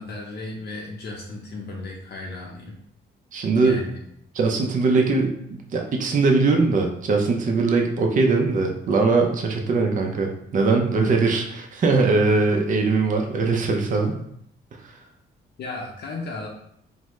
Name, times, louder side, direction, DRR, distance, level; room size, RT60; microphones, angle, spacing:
voice 1, 0.0-2.8 3.6-4.0 15.6-16.5, left 2 dB, 55° left, -1 dB, 0.6 m, -35 dB
voice 2, 3.3-3.8 4.3-14.2 14.8-14.9, right 3 dB, 40° right, 2 dB, 0.5 m, -21 dB
3.4 x 2.0 x 3.1 m, 0.73 s
cardioid pair, 90°, 20 cm